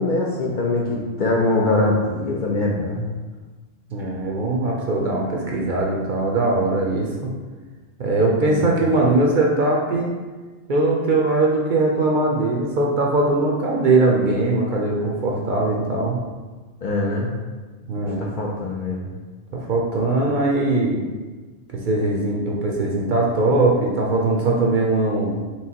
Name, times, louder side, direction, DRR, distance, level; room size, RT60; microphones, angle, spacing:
voice 1, 0.0-3.1 8.5-8.7 16.8-17.4 18.0-19.1, left 2 dB, 60° left, -2 dB, 0.5 m, -23 dB
voice 2, 3.9-7.3 8.0-10.1 10.7-16.2 17.9-18.3 19.5-21.0 21.7-25.3, right 2 dB, 55° right, -1 dB, 0.6 m, -20 dB
4.6 x 3.3 x 2.8 m, 1.3 s
omnidirectional pair, 1.2 m